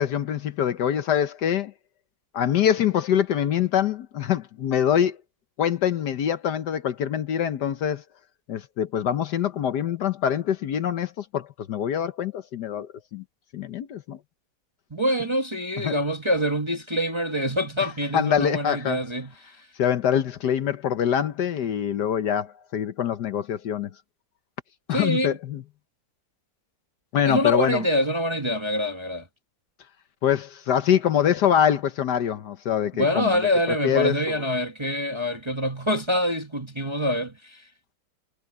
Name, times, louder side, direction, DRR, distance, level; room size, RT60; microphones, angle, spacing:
voice 1, 0.0-1.7 2.3-5.2 5.6-8.0 8.5-13.2 13.5-14.2 15.8-15.9 18.1-19.0 19.8-23.9 24.9-25.6 27.1-27.8 30.2-33.4 33.7-34.4, left 9 dB, 65° left, 1.4 m, -24 dB
voice 2, 14.9-19.5 24.9-25.4 27.2-29.3 33.0-37.6, equal, 15° right, 1.2 m, -25 dB
omnidirectional pair, 2.1 m